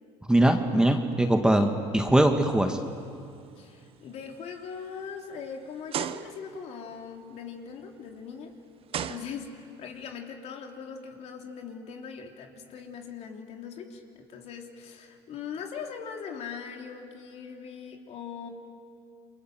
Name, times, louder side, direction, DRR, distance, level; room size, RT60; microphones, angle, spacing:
voice 1, 0.3-2.8, right 1 dB, 5° right, 5 dB, 1.8 m, -22 dB
sound 1, 2.7-3.1 3.6-3.7 4.4-4.5 5.9-6.6 8.1-8.2 8.9-9.8, right 9 dB, 45° right, 1.0 m, -35 dB
voice 2, 3.6-8.5 8.9-18.5, left 6 dB, 55° left, 2 dB, 3.3 m, -40 dB
29.0 x 23.5 x 7.8 m, 2.5 s
supercardioid pair, 90°, 13 cm